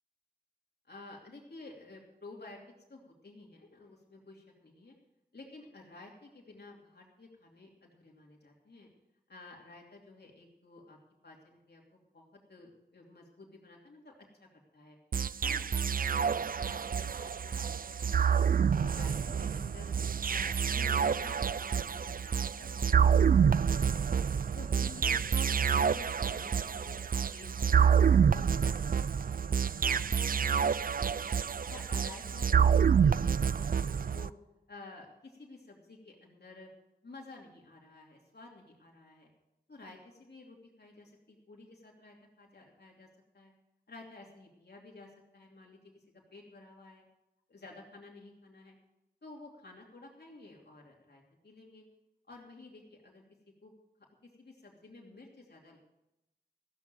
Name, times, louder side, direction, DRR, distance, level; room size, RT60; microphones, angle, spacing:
voice 1, 0.9-2.6 2.9-4.9 5.3-8.9 9.3-11.0 11.2-15.0 15.4-17.7 18.1-18.4 18.8-19.9 20.3-24.1 24.5-27.0 27.3-27.9 28.3-28.8 29.1-30.5 31.0-31.2 31.7-34.3 34.7-36.7 37.0-39.3 39.7-43.1 43.3-43.5 43.9-45.8 46.1-47.0 47.5-48.7 49.2-51.8 52.3-53.2 53.6-53.7 54.4-55.8, left 2 dB, 80° left, -1 dB, 2.8 m, -52 dB
sound 1, 15.1-34.3, right 7 dB, 60° right, 0.4 m, -28 dB
15.0 x 7.2 x 7.7 m, 0.89 s
wide cardioid pair, 45°, 17 cm